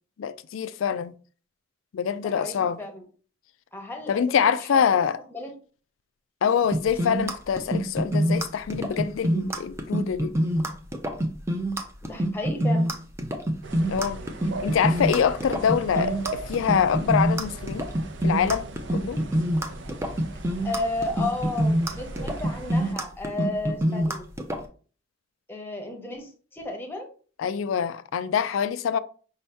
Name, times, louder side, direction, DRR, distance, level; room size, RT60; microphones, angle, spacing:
voice 1, 0.2-1.1 1.9-2.8 4.1-5.2 6.4-10.3 13.9-14.2 14.6-17.9 18.2-19.2 27.4-29.0, left 7 dB, 90° left, 0.4 m, -25 dB
voice 2, 2.2-3.0 3.7-5.0 5.3-5.5 12.1-12.9 20.6-24.2 25.5-27.1, left 2 dB, 10° left, 0.9 m, -33 dB
sound 1, 6.7-24.6, right 1 dB, 15° right, 0.5 m, -25 dB
sound 2, 13.6-23.0, right 2 dB, 65° right, 0.6 m, -38 dB
5.3 x 2.7 x 3.4 m
head